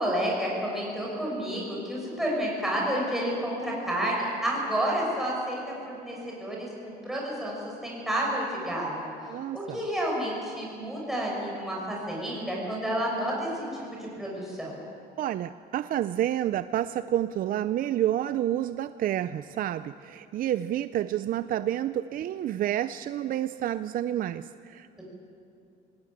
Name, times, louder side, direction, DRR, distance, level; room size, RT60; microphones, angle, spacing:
voice 1, 0.0-5.7 6.0-7.5 7.8-9.1 9.5-14.7, right 1 dB, ahead, -4 dB, 6.3 m, -30 dB
voice 2, 9.3-9.8 15.2-25.0, right 12 dB, 55° right, 13 dB, 0.5 m, -29 dB
19.5 x 18.0 x 9.0 m, 2.6 s
cardioid pair, 110°, 17 cm